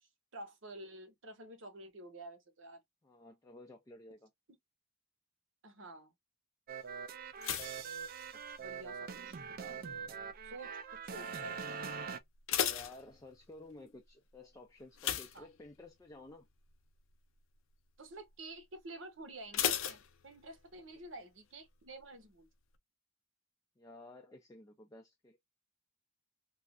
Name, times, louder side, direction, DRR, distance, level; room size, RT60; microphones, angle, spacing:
voice 1, 0.0-2.8 5.6-6.1 8.3-9.8 10.4-11.8 15.3-15.5 18.0-22.5, right 2 dB, 65° right, 0.9 m, -50 dB
voice 2, 3.0-4.3 12.6-16.5 23.8-25.4, left 2 dB, 15° left, 0.4 m, -53 dB
sound 1, 6.7-12.2, right 6 dB, 45° right, 0.4 m, -43 dB
sound 2, 7.4-8.9 9.1-9.6 10.2-10.6 10.9-11.0 11.4-11.5 12.1-13.7 15.0-16.1 16.5-16.7 17.1-17.2 19.5-20.7 21.0-21.1, left 9 dB, 80° left, 0.5 m, -36 dB
3.1 x 2.4 x 2.4 m
head